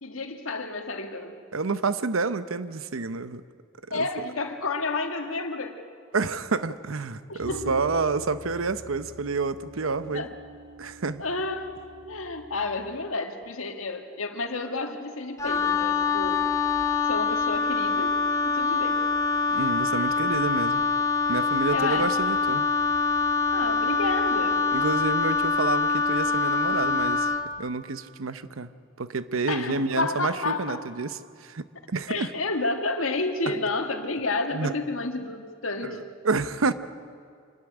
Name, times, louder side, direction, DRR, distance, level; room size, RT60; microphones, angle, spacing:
voice 1, 0.0-1.4 3.9-5.9 7.3-7.7 9.9-10.3 11.2-11.8 12.1-16.5 17.1-18.1 18.4-19.0 21.7-22.1 23.5-24.7 29.5-30.8 32.1-36.0, left 3 dB, 85° left, 5 dB, 1.9 m, -30 dB
voice 2, 1.5-3.4 3.9-4.1 6.1-10.3 10.8-11.2 19.5-20.8 21.3-22.7 24.7-27.3 27.6-28.7 29.0-32.3 34.5-34.7 35.8-36.0 36.2-36.7, right 3 dB, 85° right, 13 dB, 0.9 m, -29 dB
sound 1, 7.4-13.0, equal, 60° right, 2.2 m, -45 dB
Wind instrument woodwind instrument, 15.4-27.5, left 4 dB, 15° left, 1.0 m, -25 dB
26.0 x 13.0 x 9.9 m, 2.2 s
head